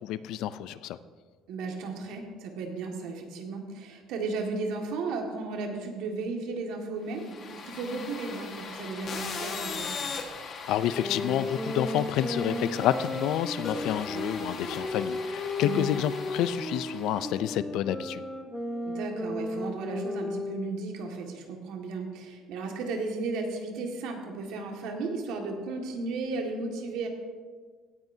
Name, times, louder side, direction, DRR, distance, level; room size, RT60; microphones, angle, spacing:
voice 1, 0.0-1.0 10.7-18.2, left 11 dB, 65° left, 14 dB, 0.4 m, -29 dB
voice 2, 1.5-9.9 15.6-15.9 18.8-27.1, right 3 dB, 70° right, 2 dB, 1.8 m, -34 dB
sound 1, 7.1-17.3, left 4 dB, 40° left, 1.5 m, -39 dB
sound 2, 10.9-20.9, left 2 dB, 5° left, 1.0 m, -35 dB
17.0 x 10.5 x 2.7 m, 1.6 s
cardioid pair, 160°, 0 cm